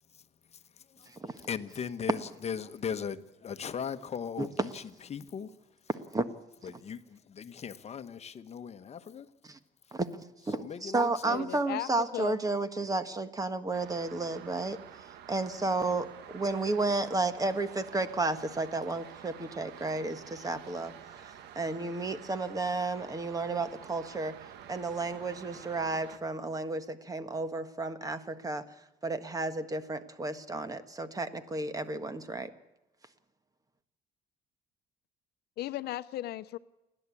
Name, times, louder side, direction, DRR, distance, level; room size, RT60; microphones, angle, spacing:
voice 1, 1.5-4.8 5.1-5.5 6.6-9.3 10.5-11.4, left 7 dB, 40° left, 1.1 m, -38 dB
voice 2, 10.5-14.8 15.3-24.3 24.7-28.6 29.0-32.5, right 3 dB, 20° right, 1.5 m, -32 dB
voice 3, 11.3-12.4 35.6-36.6, left 14 dB, 70° left, 0.7 m, -36 dB
sound 1, 13.7-26.2, right 9 dB, 80° right, 1.3 m, -49 dB
29.0 x 11.0 x 8.5 m
cardioid pair, 110°, 17 cm